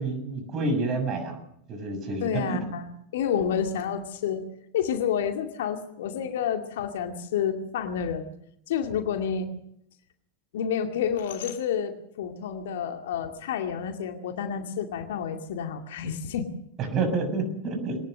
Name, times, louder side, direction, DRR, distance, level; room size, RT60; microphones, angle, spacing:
voice 1, 0.0-1.4 1.7-2.6 16.8-18.0, right 3 dB, 30° right, 6 dB, 6.9 m, -28 dB
voice 2, 2.2-4.5 4.7-8.3 8.7-9.5 10.5-16.5, left 8 dB, 55° left, 5 dB, 2.2 m, -29 dB
23.0 x 19.0 x 6.5 m, 0.72 s
figure-of-eight pair, 90°, 0 cm